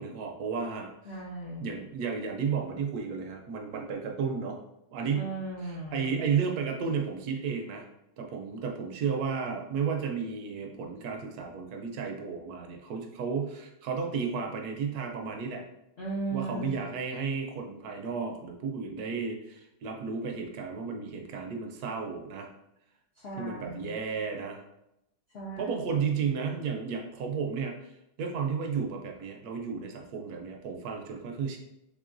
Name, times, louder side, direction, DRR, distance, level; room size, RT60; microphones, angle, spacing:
voice 1, 0.0-0.9 1.6-4.6 4.9-5.3 5.6-7.9 8.2-15.6 16.3-22.5 23.4-24.6 25.6-27.9 28.2-31.6, right 6 dB, 75° right, 3 dB, 1.0 m, -33 dB
voice 2, 1.1-1.8 5.1-6.1 16.0-16.8 23.2-24.0 25.3-26.0, right 2 dB, 75° left, -3 dB, 0.5 m, -37 dB
3.7 x 3.3 x 2.5 m, 0.85 s
omnidirectional pair, 1.8 m